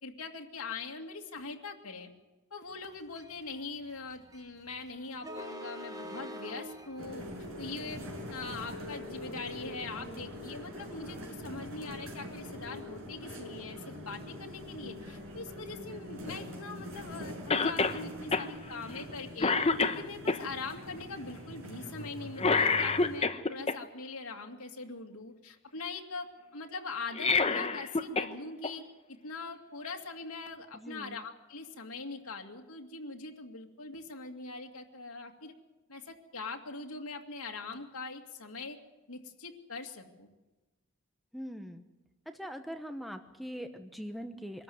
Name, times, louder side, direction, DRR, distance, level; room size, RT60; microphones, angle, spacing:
voice 1, 0.0-2.1 2.5-7.3 7.6-8.0 8.3-19.6 19.9-28.8 29.2-35.5 35.9-38.8 39.1-40.3, left 3 dB, 90° left, 3 dB, 2.4 m, -42 dB
sound 1, 2.8-9.0, equal, 15° right, 1.4 m, -46 dB
sound 2, 7.0-23.2, left 1 dB, 65° right, 5.7 m, -44 dB
Cough, 17.5-18.0 18.3-18.5 18.9-19.1 19.4-20.4 22.4-23.8 27.0-28.3 28.6-28.7 29.8-29.9, left 4 dB, 30° left, 0.9 m, -27 dB
voice 2, 30.8-31.2 41.3-41.8 42.4-44.6, equal, ahead, 7 dB, 0.9 m, -42 dB
23.5 x 13.5 x 9.4 m, 1.1 s
head